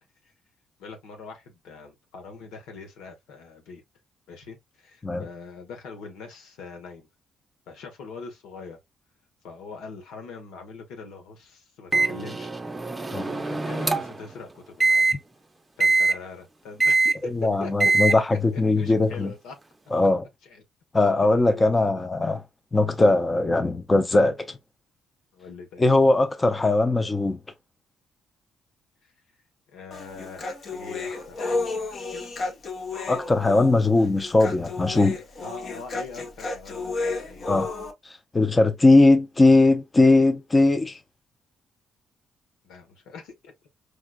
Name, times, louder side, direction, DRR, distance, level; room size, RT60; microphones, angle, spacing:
voice 1, 0.8-3.8 4.3-7.1 7.7-8.8 9.4-12.5 13.2-15.1 15.8-17.7 18.3-19.6 20.4-20.6 21.2-22.1 25.3-25.9 29.7-32.1 35.4-37.5 42.6-43.5, left 4 dB, 90° left, 1.2 m, -42 dB
Microwave oven, 11.9-14.2 14.8-15.1 15.8-16.1 16.8-17.2 17.8-18.1, right 3 dB, 20° right, 0.6 m, -22 dB
voice 2, 17.3-19.3 19.9-20.2 20.9-22.4 22.7-24.6 25.8-27.4 33.1-35.2 37.5-37.7 38.3-41.0, left 2 dB, 20° left, 0.6 m, -20 dB
Human voice, 29.9-37.9, left 3 dB, 50° left, 1.0 m, -32 dB
4.9 x 2.3 x 2.3 m
cardioid pair, 90°, 0 cm